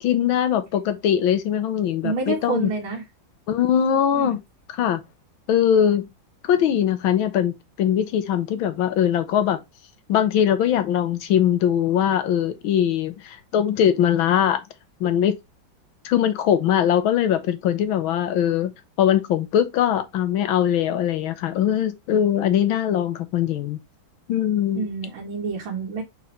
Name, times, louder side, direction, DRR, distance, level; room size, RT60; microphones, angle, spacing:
voice 1, 0.0-2.7 3.5-4.4 4.7-5.0 5.5-6.1 6.4-9.6 10.1-14.6 15.0-15.3 16.1-18.7 19.0-23.8 24.3-24.9, left 9 dB, 90° left, 1.7 m, -21 dB
voice 2, 2.0-3.0 4.1-4.4 24.8-26.0, right 4 dB, 85° right, 2.2 m, -28 dB
5.3 x 4.2 x 4.4 m
omnidirectional pair, 2.2 m